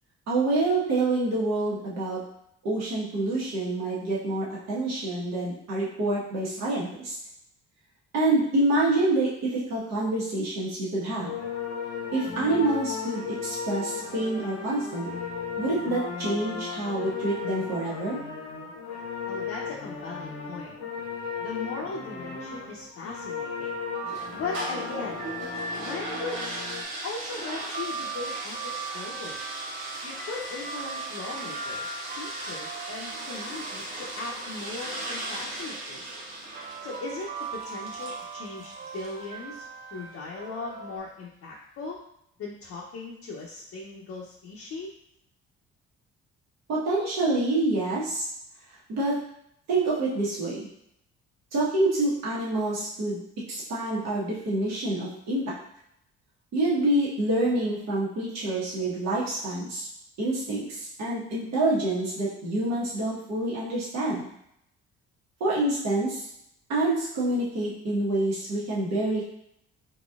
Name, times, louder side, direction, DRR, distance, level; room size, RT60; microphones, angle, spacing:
voice 1, 0.3-2.2 2.6-7.2 8.1-11.3 12.1-15.1 15.6-18.2 46.7-48.3 48.9-49.2 49.7-50.7 51.5-53.2 53.5-55.5 56.5-59.9 60.2-64.2 65.4-66.3 66.7-69.3, right 2 dB, 65° right, -7 dB, 1.3 m, -27 dB
Brass Band Warm up, 11.2-26.8, left 5 dB, 75° left, 0.9 m, -36 dB
voice 2, 19.3-20.8 21.4-23.8 24.3-25.3 25.7-26.6 27.0-29.4 30.0-36.0 36.8-39.6 39.9-42.0 42.4-44.9, left 3 dB, 50° left, -4 dB, 0.8 m, -38 dB
sound 1, 23.9-34.8 35.7-41.0, right 4 dB, 30° right, 0.5 m, -40 dB
sound 2, 24.1-39.3, right 1 dB, 80° right, 0.9 m, -38 dB
4.0 x 2.9 x 2.4 m, 0.74 s
supercardioid pair, 60°, 30 cm